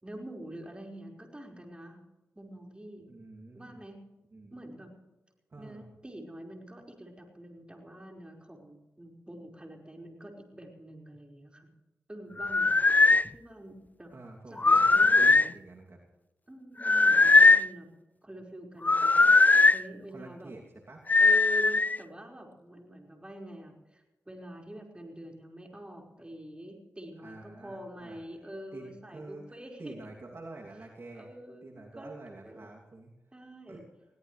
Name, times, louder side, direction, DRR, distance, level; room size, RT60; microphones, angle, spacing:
voice 1, 0.0-2.0 2.3-3.1 3.5-4.0 4.5-4.9 5.6-11.7 12.1-12.7 13.3-14.1 14.5-15.5 16.5-17.9 18.2-20.5 21.2-30.0 31.1-32.1 32.4-32.7 33.3-33.8, right 1 dB, 20° right, 1 dB, 5.1 m, -45 dB
voice 2, 3.1-3.8 4.3-4.8 5.5-5.9 12.3-12.7 13.1-13.2 14.1-16.0 20.1-21.0 27.2-28.2 28.7-31.3 31.6-33.1 33.7-33.8, right 2 dB, 50° right, -1 dB, 2.8 m, -48 dB
sound 1, 12.4-13.2 14.6-15.5 16.8-17.7 18.8-19.8 21.1-22.0, left 3 dB, 30° left, 0.4 m, -20 dB
21.5 x 17.0 x 3.3 m, 1.1 s
cardioid pair, 45°, 5 cm